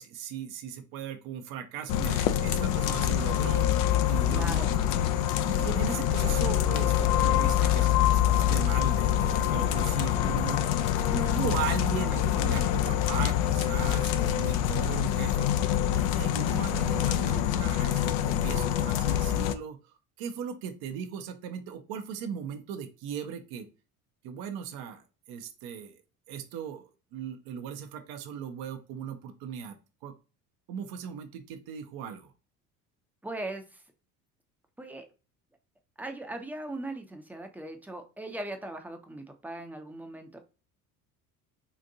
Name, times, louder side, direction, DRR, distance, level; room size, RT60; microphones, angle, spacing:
voice 1, 0.0-3.7 4.1-4.7 5.5-10.7 11.3-15.5 15.9-19.8 20.2-23.7 24.2-26.0 26.3-29.8 30.0-30.1 30.7-32.3, right 8 dB, 55° right, 6 dB, 0.7 m, -38 dB
sound 1, 1.9-19.5, left 11 dB, 65° left, 0.5 m, -25 dB
voice 2, 4.3-4.7 6.2-6.4 11.1-11.4 33.2-33.8 34.8-35.1 36.0-40.4, right 1 dB, 5° right, 4 dB, 0.6 m, -39 dB
3.9 x 2.5 x 2.7 m, 0.33 s
hypercardioid pair, 60°, 44 cm